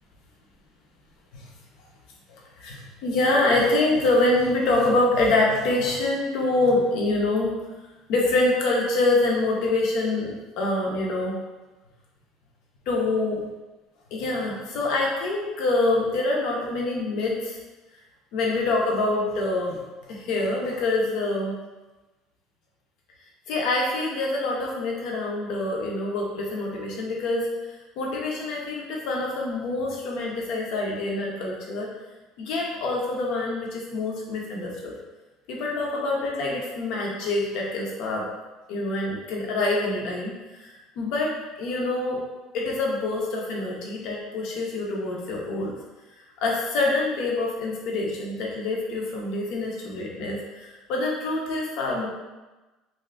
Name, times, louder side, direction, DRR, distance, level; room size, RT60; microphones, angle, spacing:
voice 1, 2.3-7.6 8.1-11.4 12.9-13.4 14.1-17.6 18.3-21.5 23.5-31.9 32.4-34.9 35.5-38.3 38.7-41.3 41.6-42.2 42.5-45.7 46.4-52.1, left 2 dB, 60° left, -2 dB, 0.7 m, -25 dB
2.6 x 2.4 x 3.3 m, 1.1 s
cardioid pair, 170°, 0 cm